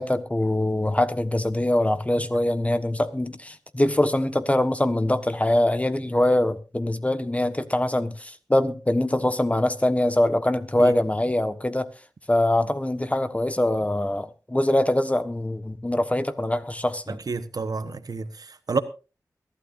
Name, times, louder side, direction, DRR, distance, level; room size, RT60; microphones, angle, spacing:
voice 1, 0.0-11.9 12.3-17.2, left 1 dB, 20° left, 1.4 m, -23 dB
voice 2, 17.1-18.8, right 4 dB, 75° right, 1.1 m, -29 dB
22.5 x 12.5 x 2.6 m
cardioid pair, 40°, 7 cm